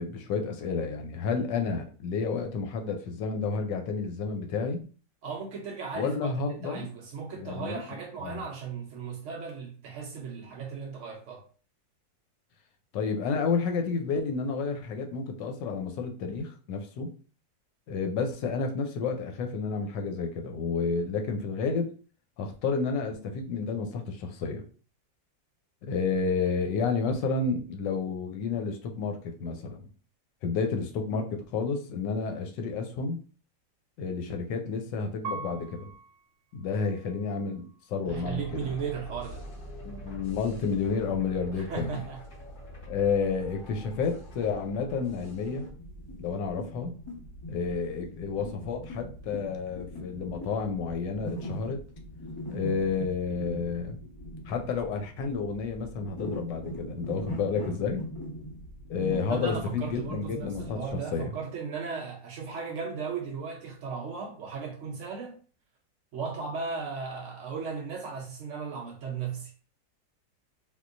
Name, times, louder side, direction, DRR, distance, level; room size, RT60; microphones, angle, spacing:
voice 1, 0.0-4.8 5.9-6.9 7.4-7.8 8.2-8.4 12.9-17.1 17.9-21.9 22.4-24.6 25.8-29.9 30.4-33.2 34.0-35.9 36.5-38.7 39.8-42.0 42.9-45.7 46.2-46.9 47.5-51.8 52.5-54.0 54.5-58.0 58.9-60.8 61.1-61.3, left 5 dB, 75° left, 1.2 m, -30 dB
voice 2, 5.2-11.4 38.1-39.4 41.6-42.2 59.3-65.4 66.1-69.5, right 5 dB, 90° right, 0.6 m, -36 dB
Piano, 35.2-38.0 38.6-39.3, right 4 dB, 70° right, 1.0 m, -44 dB
sound 1, 38.1-45.7, equal, 50° left, 0.6 m, -44 dB
sound 2, 45.4-61.0, equal, 20° left, 1.2 m, -41 dB
3.6 x 2.7 x 2.5 m
omnidirectional pair, 2.0 m